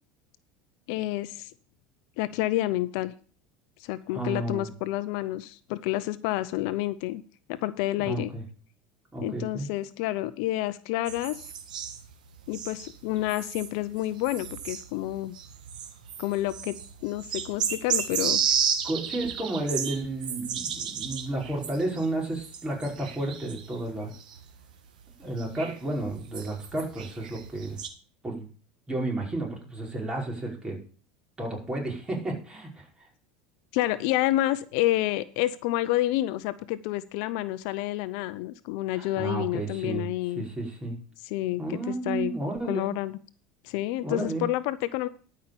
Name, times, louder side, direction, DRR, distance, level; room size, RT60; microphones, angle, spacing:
voice 1, 0.9-1.5 2.2-3.1 3.8-7.2 7.5-8.3 9.2-11.4 12.5-15.3 16.2-16.7 17.0-18.5 33.7-40.4 41.3-42.3 42.7-43.2 43.6-45.1, left 15 dB, 70° left, 15 dB, 0.7 m, -29 dB
voice 2, 4.1-4.7 8.0-8.4 9.1-9.7 18.8-24.1 25.2-27.8 28.2-28.5 28.9-30.8 31.4-32.9 38.9-40.1 40.3-41.0 41.6-42.9 44.0-44.4, right 2 dB, 20° right, -1 dB, 5.3 m, -32 dB
sound 1, 11.1-23.8 24.0-24.6 25.2-27.9, right 7 dB, 90° right, 1.6 m, -33 dB
12.5 x 5.7 x 6.9 m, 0.40 s
hypercardioid pair, 90°, 4 cm